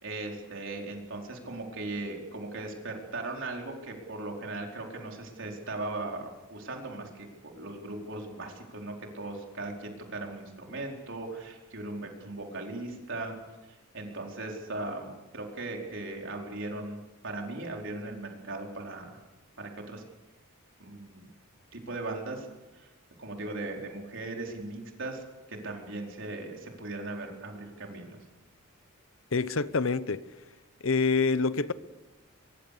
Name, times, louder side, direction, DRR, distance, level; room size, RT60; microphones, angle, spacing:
voice 1, 0.0-13.3 13.9-19.2 19.6-20.0 20.8-21.3 21.7-22.5 22.7-22.9 23.2-25.2 25.5-28.2, right 2 dB, 60° right, 4.6 m, -38 dB
voice 2, 29.3-30.2 30.8-31.7, left 4 dB, 70° left, 0.9 m, -26 dB
24.0 x 23.0 x 6.9 m
head